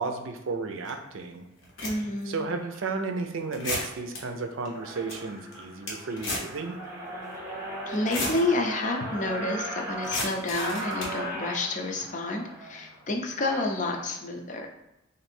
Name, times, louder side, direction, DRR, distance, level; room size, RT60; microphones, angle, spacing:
voice 1, 0.0-1.5 2.3-6.8, right 4 dB, 80° right, 6 dB, 0.5 m, -33 dB
sound 1, 0.9-1.0 1.6-2.2 2.7-2.9 3.5-4.2 4.6-4.7 4.9-5.1 5.5-6.6 6.8-6.9 7.9-8.4 10.0-11.2, left 2 dB, 90° left, 1.1 m, -33 dB
voice 2, 1.8-2.5 7.9-14.7, left 2 dB, 40° left, 2 dB, 0.5 m, -29 dB
sound 2, 1.8-2.0 2.6-2.9 3.4-3.8 4.3-4.4 4.6-14.0, right 1 dB, 15° right, 0.8 m, -38 dB
3.2 x 2.6 x 4.3 m, 0.92 s
head